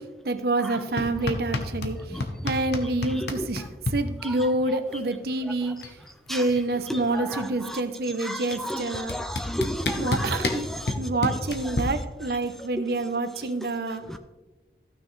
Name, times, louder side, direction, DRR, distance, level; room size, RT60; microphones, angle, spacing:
voice 1, 0.2-3.7 3.9-5.8 6.3-9.2 10.0-10.7 11.0-14.0, right 2 dB, 55° right, 10 dB, 0.7 m, -27 dB
sound 1, 1.0-2.0 2.2-4.0 5.2-5.3 5.6-6.0 6.3-7.6 8.5-8.6 9.1-11.8, left 2 dB, 65° left, 1.0 m, -29 dB
voice 2, 8.2-11.0 14.1-14.2, equal, ahead, 8 dB, 0.3 m, -32 dB
14.5 x 6.4 x 3.2 m, 1.2 s
head